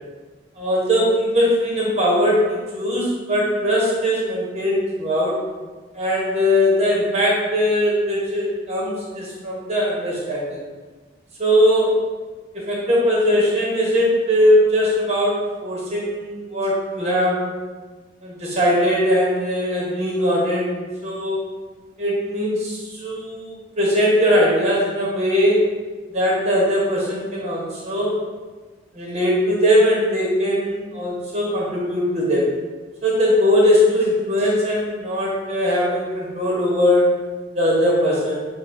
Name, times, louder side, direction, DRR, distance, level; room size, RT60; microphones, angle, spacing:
voice 1, 0.6-5.4 5.9-10.6 11.4-12.0 12.5-17.5 18.2-20.7 21.0-21.4 22.0-25.7 26.1-28.2 28.9-32.5 33.0-37.1 37.5-38.4, equal, 35° right, -4 dB, 0.9 m, -20 dB
5.8 x 2.6 x 2.5 m, 1.3 s
head